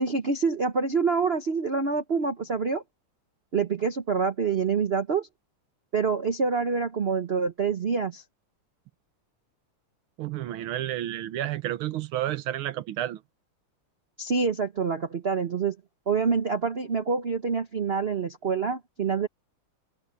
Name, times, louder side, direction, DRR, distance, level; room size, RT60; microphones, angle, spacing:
voice 1, 0.0-2.8 3.5-5.3 5.9-8.2 14.2-15.8 16.1-19.3, right 5 dB, 45° right, 0.8 m, -26 dB
voice 2, 10.2-13.2, right 13 dB, 90° right, 1.7 m, -31 dB
omnidirectional pair, 2.2 m